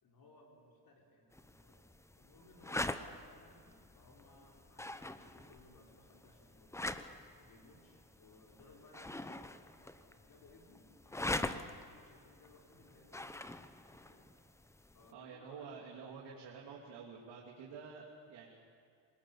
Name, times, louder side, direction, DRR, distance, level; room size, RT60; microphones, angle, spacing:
voice 1, 0.0-1.8 2.2-7.0 7.4-13.5 13.8-14.3 14.9-15.8, left 2 dB, 50° left, -1 dB, 4.4 m, -62 dB
sound 1, 1.3-15.1, left 2 dB, 5° left, 0.7 m, -44 dB
voice 2, 15.1-18.6, right 5 dB, 70° right, -2 dB, 3.0 m, -49 dB
26.5 x 18.5 x 7.3 m, 2.2 s
cardioid pair, 120°, 43 cm